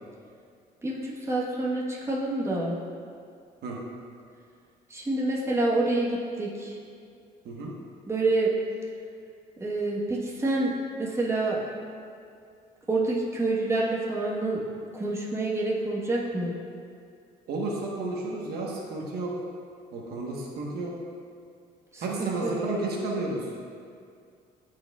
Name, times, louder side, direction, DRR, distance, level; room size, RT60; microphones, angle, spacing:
voice 1, 0.8-2.8 4.9-6.7 8.1-8.5 9.6-10.7 11.0-11.6 12.9-14.6 14.9-16.6 21.9-22.6, right 2 dB, 15° right, -4 dB, 1.2 m, -27 dB
voice 2, 17.5-19.3 19.9-20.9 22.0-23.5, right 2 dB, 70° right, -2 dB, 1.2 m, -31 dB
13.0 x 4.8 x 2.3 m, 2.3 s
cardioid pair, 110°, 17 cm